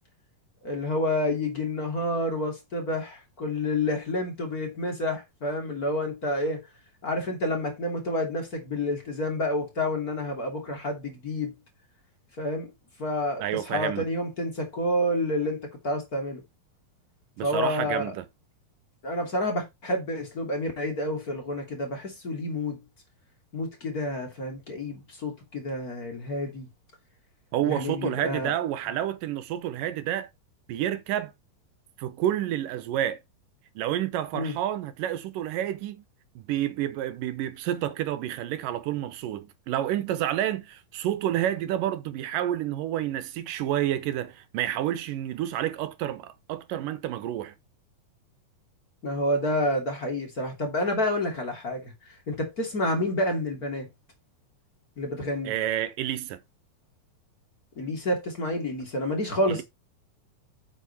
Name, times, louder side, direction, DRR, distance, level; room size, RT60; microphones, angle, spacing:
voice 1, 0.6-6.6 7.0-11.5 12.4-12.7 13.0-16.4 17.4-18.1 19.0-22.8 23.5-26.7 27.6-28.5 34.3-34.6 49.0-51.9 52.3-53.9 55.0-55.5 57.8-59.6, left 1 dB, 25° left, 2.9 m, -29 dB
voice 2, 13.4-14.1 17.4-18.2 27.5-30.3 30.7-31.3 32.0-33.2 33.8-36.0 36.4-47.5 55.4-56.4 59.5-59.6, right 12 dB, 75° right, 2.4 m, -29 dB
8.9 x 6.5 x 4.2 m
omnidirectional pair, 4.1 m